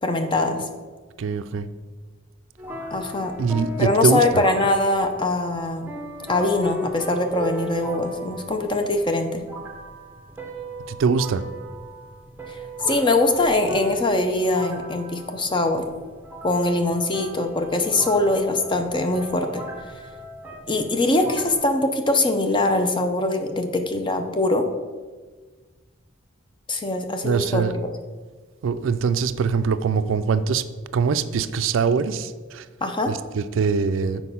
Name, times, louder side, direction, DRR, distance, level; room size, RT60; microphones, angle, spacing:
voice 1, 0.0-0.7 2.9-3.3 3.8-5.9 6.3-9.4 12.5-12.6 12.9-15.8 16.4-19.6 20.7-24.6 26.7-27.9 32.8-33.1, left 2 dB, 25° left, 6 dB, 0.6 m, -22 dB
voice 2, 1.2-1.7 3.4-4.4 10.9-11.4 27.2-27.7 28.6-30.6 30.9-32.7 33.1-34.2, right 5 dB, 70° right, 13 dB, 0.4 m, -23 dB
sound 1, 2.6-21.6, equal, 10° right, 0.8 m, -37 dB
6.4 x 4.6 x 5.5 m, 1.4 s
head